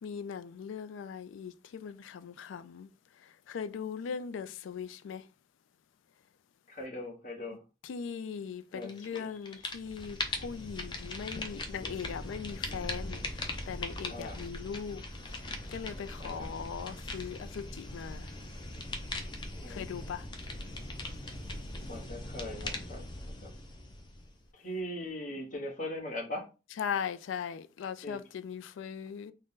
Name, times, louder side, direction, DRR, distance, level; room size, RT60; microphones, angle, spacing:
voice 1, 0.0-2.9 3.2-5.3 7.8-15.5 15.7-18.3 19.7-20.3 26.8-29.3, left 7 dB, 90° left, 0.3 m, -39 dB
voice 2, 6.7-7.6 8.7-9.3 9.7-9.8 14.1-14.4 16.2-16.5 19.6-19.9 21.8-23.0 23.4-23.6 24.5-26.5 28.0-28.2, left 1 dB, 45° left, 1.0 m, -40 dB
sound 1, 8.8-9.2 9.5-24.5, left 2 dB, 25° left, 0.4 m, -40 dB
3.8 x 2.1 x 3.6 m
head